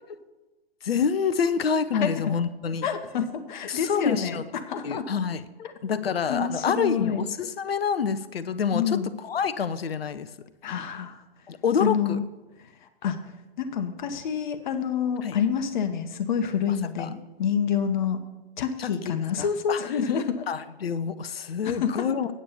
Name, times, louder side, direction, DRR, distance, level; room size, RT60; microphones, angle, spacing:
voice 1, 0.8-2.9 3.7-4.4 4.8-5.4 5.8-10.3 11.5-12.2 15.2-15.4 17.0-17.1 18.8-19.8 20.5-22.3, left 6 dB, 70° left, 13 dB, 0.7 m, -27 dB
voice 2, 2.8-5.1 5.6-6.0 6.3-7.2 8.7-9.1 10.6-11.2 11.8-12.2 13.0-13.2 13.6-18.2 18.6-20.5 21.6-22.1, left 7 dB, 50° left, 9 dB, 1.2 m, -28 dB
8.8 x 7.5 x 6.8 m, 1.1 s
figure-of-eight pair, 120°, 31 cm